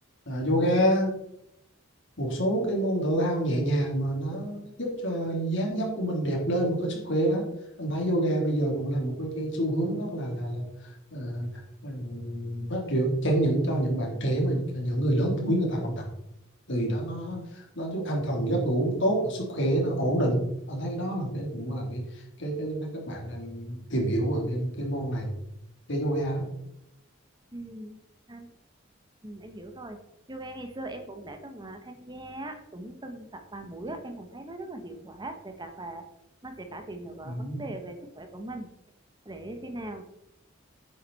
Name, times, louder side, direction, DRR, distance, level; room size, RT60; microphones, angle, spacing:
voice 1, 0.3-1.1 2.2-7.5 7.8-10.6 11.1-11.5 11.8-15.9 16.7-22.0 22.4-25.3 25.9-26.5 37.2-37.6, right 1 dB, 65° left, -1 dB, 3.3 m, -27 dB
voice 2, 27.5-28.0 28.3-28.5 29.2-30.0 30.3-36.0 36.4-38.7 39.2-40.0, right 1 dB, 20° right, 6 dB, 1.1 m, -40 dB
10.0 x 8.7 x 4.2 m, 0.82 s
head